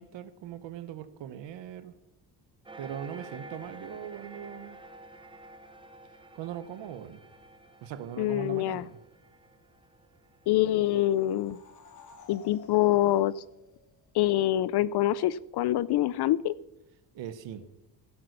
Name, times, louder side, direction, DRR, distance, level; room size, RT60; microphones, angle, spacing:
voice 1, 0.0-1.9 2.8-4.8 6.3-7.2 7.8-9.0 17.1-17.6, right 10 dB, 80° right, 11 dB, 1.2 m, -40 dB
sound 1, 2.6-11.7, right 2 dB, 10° right, 1.1 m, -50 dB
voice 2, 8.2-8.8 10.5-11.6 12.3-13.4 14.1-16.5, left 14 dB, 65° left, 18 dB, 0.5 m, -25 dB
sound 2, 10.7-14.2, left 5 dB, 45° left, 2.3 m, -54 dB
16.0 x 8.3 x 6.6 m, 0.89 s
cardioid pair, 145°, 43 cm